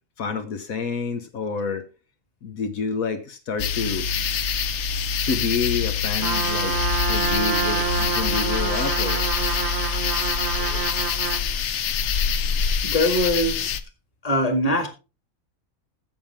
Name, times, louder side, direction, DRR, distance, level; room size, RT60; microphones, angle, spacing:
voice 1, 0.2-1.8 2.4-4.1 5.3-6.8 7.1-9.3, left 5 dB, 80° left, 8 dB, 1.4 m, -28 dB
sound 1, 3.6-13.8, left 6 dB, 60° left, 0.9 m, -25 dB
Trumpet, 6.2-11.5, right 7 dB, 55° right, 1.1 m, -27 dB
voice 2, 10.5-11.2 12.8-13.7 14.2-14.9, left 1 dB, 25° left, 7 dB, 1.9 m, -23 dB
14.0 x 7.4 x 3.5 m, 0.31 s
omnidirectional pair, 1.5 m